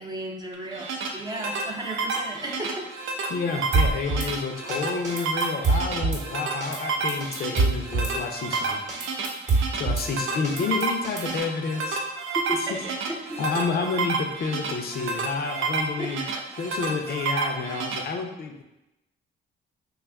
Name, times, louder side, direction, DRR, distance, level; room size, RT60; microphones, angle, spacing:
voice 1, 0.0-2.9 12.3-13.4 16.0-16.3, right 1 dB, 20° right, 0 dB, 0.5 m, -34 dB
sound 1, 0.5-18.0, right 4 dB, 80° right, 0.5 m, -30 dB
voice 2, 3.3-8.8 9.7-12.0 13.4-16.2 16.6-18.6, left 5 dB, 50° left, 4 dB, 0.5 m, -29 dB
Drum kit / Snare drum, 3.7-4.3 4.7-4.8 5.0-6.2 6.6-6.8 7.1-8.1 8.5-8.6 8.9-10.1 10.4-11.4, right 3 dB, 40° right, 0.9 m, -25 dB
3.4 x 2.3 x 3.4 m, 0.93 s
cardioid pair, 90°, 20 cm